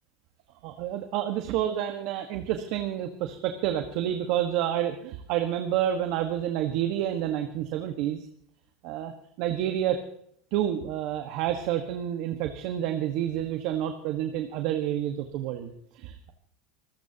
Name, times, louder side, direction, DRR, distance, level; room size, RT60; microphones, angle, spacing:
voice 1, 0.6-8.3 8.8-9.1 9.4-10.0 10.5-16.3, right 11 dB, 65° right, 6 dB, 1.5 m, -29 dB
26.5 x 14.5 x 2.9 m, 0.68 s
supercardioid pair, 110°, 0 cm